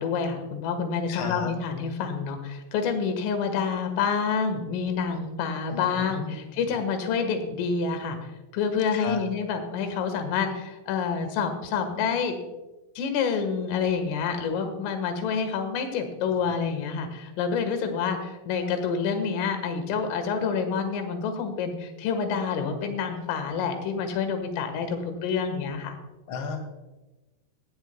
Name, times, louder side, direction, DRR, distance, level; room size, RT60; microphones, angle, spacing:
voice 1, 0.0-8.2 8.5-12.4 13.0-26.0, left 6 dB, 90° left, 7 dB, 4.1 m, -28 dB
voice 2, 1.1-1.5 5.7-6.6 8.9-9.2 26.3-26.6, left 6 dB, 65° left, 4 dB, 1.2 m, -34 dB
17.0 x 15.0 x 2.2 m, 1.1 s
omnidirectional pair, 5.6 m